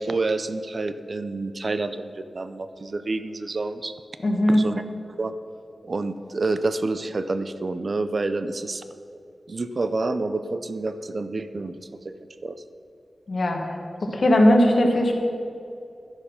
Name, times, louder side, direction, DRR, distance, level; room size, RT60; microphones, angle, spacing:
voice 1, 0.0-3.9 4.5-4.8 5.2-5.3 5.9-8.8 9.5-11.7 12.0-12.1 12.4-12.6, right 3 dB, 45° right, 11 dB, 0.5 m, -28 dB
voice 2, 4.2-4.7 13.3-15.1, left 1 dB, 50° left, 2 dB, 1.6 m, -19 dB
11.5 x 10.5 x 5.6 m, 2.6 s
wide cardioid pair, 135°, 0 cm